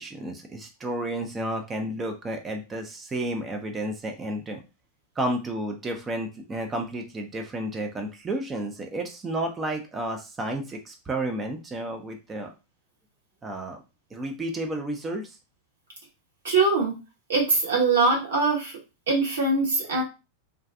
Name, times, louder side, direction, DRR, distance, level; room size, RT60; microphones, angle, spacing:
voice 1, 0.0-4.6 5.2-12.5 13.4-13.8 14.1-15.3, right 1 dB, 20° right, 3 dB, 0.4 m, -31 dB
voice 2, 16.4-16.9 17.3-18.7 19.1-20.0, right 3 dB, 65° right, -3 dB, 1.0 m, -22 dB
2.3 x 2.3 x 2.4 m, 0.29 s
figure-of-eight pair, 90°, 0 cm